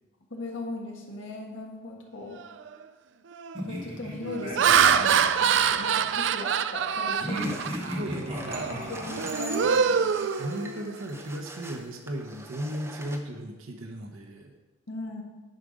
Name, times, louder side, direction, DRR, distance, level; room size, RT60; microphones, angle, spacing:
voice 1, 0.3-2.4 3.6-7.6 8.8-10.3 14.9-15.2, left 2 dB, 70° left, 0 dB, 1.5 m, -38 dB
Laughter, 2.5-2.7 3.3-3.6 4.2-8.0 8.5-8.7 9.1-11.0, right 7 dB, 60° right, 0.3 m, -25 dB
sound 1, 3.5-6.2 7.2-9.8, equal, 30° right, 2.0 m, -36 dB
sound 2, 7.2-13.2, right 2 dB, 15° right, 0.6 m, -44 dB
voice 2, 8.0-9.0 10.4-14.5, right 1 dB, 85° right, 3 dB, 0.9 m, -36 dB
10.5 x 4.9 x 5.2 m, 1.3 s
head